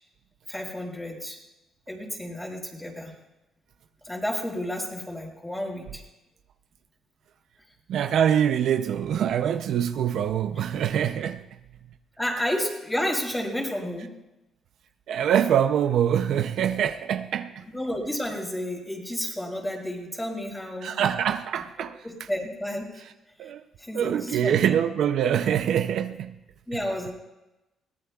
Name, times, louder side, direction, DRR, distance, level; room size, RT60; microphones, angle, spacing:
voice 1, 0.5-1.4 1.9-3.1 4.0-6.0 12.2-14.1 17.7-21.0 22.0-23.0 23.8-24.6 26.7-27.1, left 1 dB, 10° left, 5.0 m, -31 dB
voice 2, 7.9-11.5 15.1-17.7 20.8-22.0 23.4-23.6 23.9-26.4, right 9 dB, 75° right, 0.6 m, -24 dB
22.5 x 18.0 x 2.4 m
cardioid pair, 90°, 0 cm